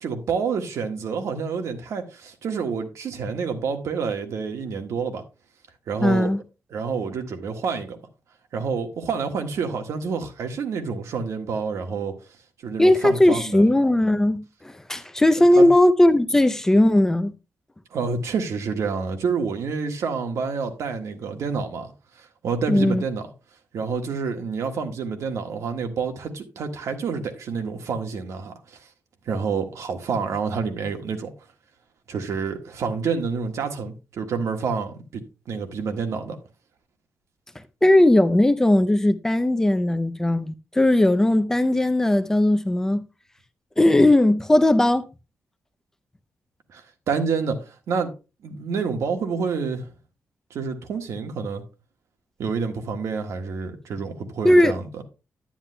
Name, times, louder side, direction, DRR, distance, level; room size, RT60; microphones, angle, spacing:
voice 1, 0.0-5.2 5.9-6.3 6.7-8.0 8.5-12.1 12.6-13.7 15.5-15.7 17.9-23.3 23.7-28.8 29.3-31.3 32.1-36.4 46.7-48.1 48.4-49.9 50.5-51.6 52.4-55.0, right 5 dB, 90° right, 1.5 m, -28 dB
voice 2, 6.0-6.4 12.8-17.3 22.7-23.0 37.8-43.0 43.8-45.1 54.4-54.8, left 1 dB, 10° left, 0.5 m, -18 dB
10.0 x 10.0 x 2.2 m
wide cardioid pair, 180°, 5 cm